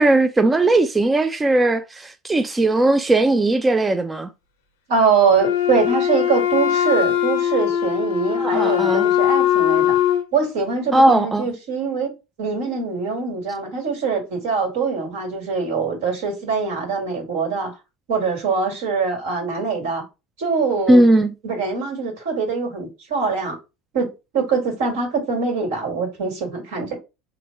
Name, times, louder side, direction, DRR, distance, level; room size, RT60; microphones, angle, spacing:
voice 1, 0.0-4.3 8.4-9.0 10.9-11.5 20.9-21.3, right 2 dB, 15° right, 0.4 m, -17 dB
voice 2, 4.9-10.0 10.3-12.1 12.4-17.7 18.1-20.0 20.4-21.0 21.4-23.6 23.9-24.1 24.3-27.0, right 5 dB, 70° right, 1.8 m, -23 dB
Wind instrument woodwind instrument, 5.4-10.3, left 10 dB, 85° left, 0.8 m, -20 dB
3.8 x 2.2 x 4.3 m
hypercardioid pair, 80°, 0 cm